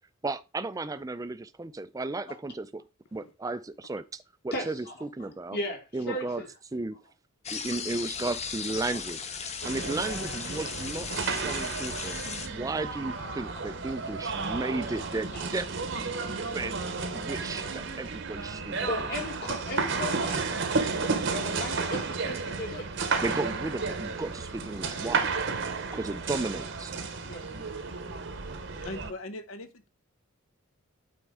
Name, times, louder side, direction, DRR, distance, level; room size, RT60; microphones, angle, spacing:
voice 1, 0.2-2.8 3.1-5.6 5.9-6.4 6.7-7.0 7.5-12.2 12.5-15.7 16.5-16.8 17.1-19.1 23.2-25.3 25.9-26.9, right 2 dB, 15° right, 0.3 m, -34 dB
voice 2, 4.5-4.9 5.5-6.5 8.9-9.0 13.2-13.3 14.1-14.2 14.9-15.0 15.3-15.5 18.9-22.9 27.2-27.5, left 1 dB, 50° left, 2.1 m, -36 dB
sound 1, 7.4-12.5, left 6 dB, 30° left, 0.7 m, -37 dB
sound 2, 9.6-29.1, right 4 dB, 55° right, 0.9 m, -32 dB
voice 3, 28.8-29.9, left 2 dB, 70° left, 0.9 m, -40 dB
8.7 x 4.5 x 3.5 m
head